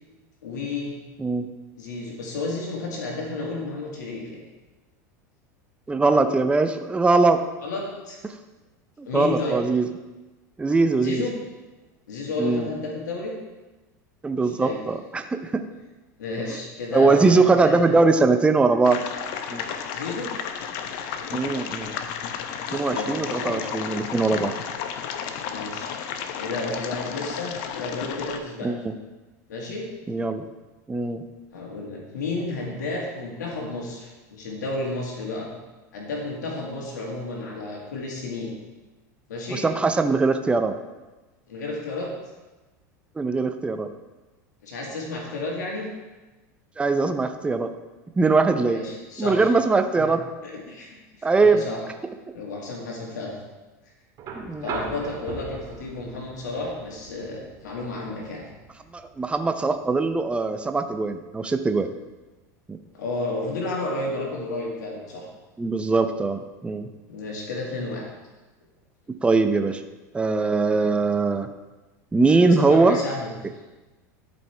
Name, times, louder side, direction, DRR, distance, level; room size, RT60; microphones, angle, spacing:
voice 1, 0.4-0.9 1.8-4.4 7.6-8.2 9.1-9.6 11.0-11.4 12.1-13.3 14.4-14.8 16.2-18.2 19.9-20.3 22.6-23.7 25.5-26.0 26.4-28.7 29.5-29.9 31.5-35.5 35.9-38.5 39.3-39.6 41.5-42.1 44.6-45.9 48.6-49.5 50.0-50.1 50.4-51.8 52.3-53.3 54.6-58.4 62.9-65.3 67.1-68.1 72.4-73.6, left 2 dB, 85° left, -1 dB, 1.9 m, -32 dB
voice 2, 1.2-1.5 5.9-7.4 9.0-9.8 10.6-11.2 12.4-12.7 14.2-15.6 16.9-19.0 19.5-19.6 21.3-22.0 22.7-24.5 28.6-28.9 30.1-30.4 30.9-31.2 39.5-40.7 43.2-43.9 46.8-47.7 48.2-48.8 49.2-50.2 51.2-51.6 54.3-54.7 58.9-61.9 62.7-62.8 65.6-66.9 69.2-69.8 70.1-71.5 72.1-73.0, right 3 dB, 10° right, 8 dB, 0.6 m, -21 dB
sound 1, 18.8-28.4, left 7 dB, 60° left, 0.8 m, -32 dB
sound 2, 54.2-62.2 63.6-63.7, right 4 dB, 45° right, 1.9 m, -40 dB
12.5 x 5.2 x 3.4 m, 1.2 s
hypercardioid pair, 105°, 9 cm